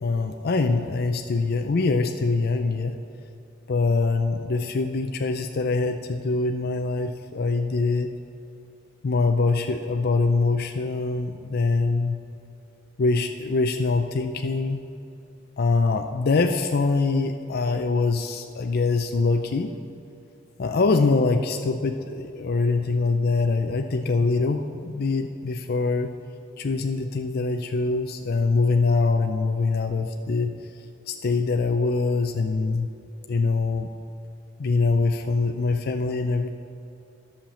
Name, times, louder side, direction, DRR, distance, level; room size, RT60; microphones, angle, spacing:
voice 1, 0.0-3.0 3.7-8.1 9.0-12.2 13.0-14.8 15.6-19.7 20.6-26.1 26.6-30.5 31.1-32.9 33.3-33.9 34.6-36.6, left 3 dB, 50° left, 6 dB, 0.4 m, -24 dB
11.5 x 5.9 x 7.1 m, 2.8 s
head